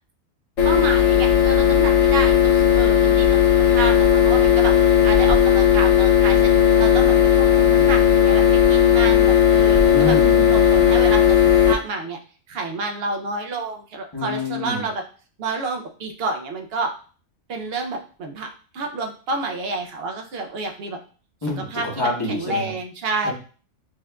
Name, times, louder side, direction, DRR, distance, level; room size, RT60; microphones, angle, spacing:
sound 1, 0.6-11.7, left 9 dB, 70° left, 1.0 m, -16 dB
voice 1, 0.6-3.4 3.7-10.2 10.5-11.4 11.6-12.2 12.5-15.0 15.4-16.9 17.5-21.0 21.7-21.9 22.3-23.3, right 3 dB, 60° right, 4 dB, 0.7 m, -29 dB
voice 2, 9.9-10.5 14.1-14.9 21.4-22.7 23.2-23.3, left 1 dB, 20° left, -2 dB, 0.9 m, -27 dB
6.2 x 2.5 x 2.2 m, 0.40 s
omnidirectional pair, 1.5 m